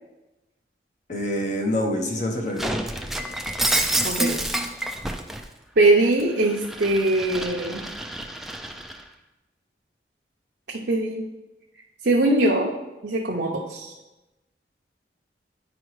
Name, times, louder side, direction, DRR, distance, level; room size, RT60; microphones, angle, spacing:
voice 1, 1.1-2.8, left 1 dB, 45° left, 1 dB, 0.8 m, -26 dB
Shatter, 2.6-5.4 5.9-9.0, right 1 dB, ahead, 0.3 m, -28 dB
voice 2, 4.0-4.4 5.8-7.9 10.7-11.3 12.0-12.7 13.0-13.9, right 2 dB, 65° right, -3 dB, 0.7 m, -21 dB
9.6 x 4.8 x 3.1 m, 1.0 s
head